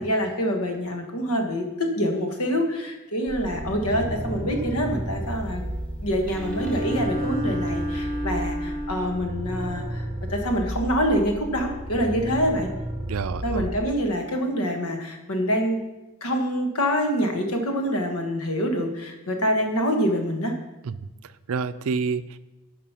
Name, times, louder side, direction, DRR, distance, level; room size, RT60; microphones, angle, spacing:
voice 1, 0.0-5.6 6.0-12.7 13.4-15.8 16.2-20.5, equal, 80° left, 4 dB, 1.5 m, -26 dB
sound 1, 3.3-13.9, right 1 dB, 20° right, 0.6 m, -33 dB
sound 2, 3.5-8.4, right 1 dB, 5° left, 1.0 m, -39 dB
Bowed string instrument, 6.2-9.4, equal, 60° left, 3.7 m, -31 dB
voice 2, 13.1-13.7 20.8-20.9 21.2-22.4, right 5 dB, 75° right, 14 dB, 0.5 m, -29 dB
10.0 x 5.3 x 5.7 m, 1.0 s
head